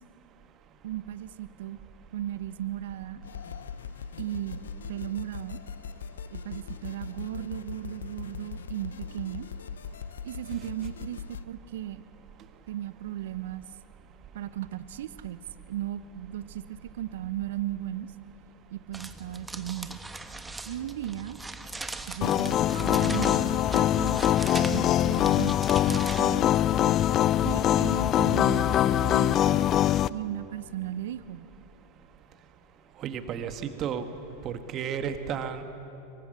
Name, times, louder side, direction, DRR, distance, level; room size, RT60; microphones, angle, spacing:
voice 1, 0.8-1.8 2.1-3.2 4.2-4.6 4.9-5.6 6.3-9.5 10.2-12.0 12.7-13.7 14.3-15.4 15.7-18.1 18.7-20.0 20.6-21.4 22.1-24.2 24.6-25.5 25.9-26.5 27.4-29.7 30.1-31.5, right 12 dB, 70° right, 15 dB, 0.7 m, -36 dB
sound 1, 3.2-11.4, left 7 dB, 80° left, 0.7 m, -40 dB
sound 2, 18.9-26.3, right 2 dB, 10° right, 1.3 m, -40 dB
sound 3, 22.2-30.1, left 11 dB, 40° left, 0.5 m, -23 dB
voice 2, 33.0-34.1 34.4-35.6, right 8 dB, 40° right, 8 dB, 1.6 m, -32 dB
24.5 x 23.5 x 6.7 m, 2.9 s
hypercardioid pair, 90°, 0 cm